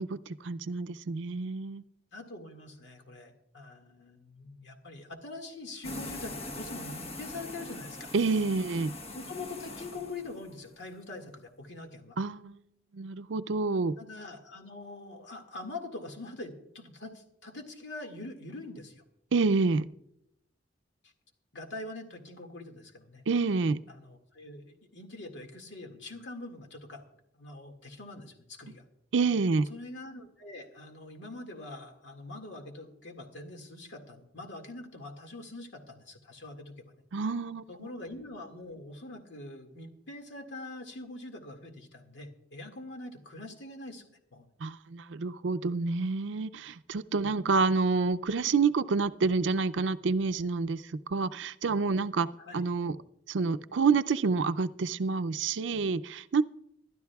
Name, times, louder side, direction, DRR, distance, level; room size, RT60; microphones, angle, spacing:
voice 1, 0.0-1.8 8.1-8.9 12.2-12.6 12.9-13.9 19.3-19.9 23.3-23.8 29.1-29.7 37.1-37.6 44.6-52.3 52.5-53.0 53.3-56.4, right 4 dB, 80° right, 13 dB, 0.5 m, -28 dB
voice 2, 2.1-8.1 9.1-12.2 14.0-19.0 21.0-21.1 21.5-23.3 23.9-27.0 27.3-28.8 29.7-36.8 37.7-44.5 47.2-47.3 52.4-52.6, left 2 dB, 70° left, 4 dB, 2.0 m, -44 dB
sound 1, 5.8-10.6, left 2 dB, 35° left, 1.2 m, -42 dB
25.0 x 12.0 x 2.3 m, 0.79 s
head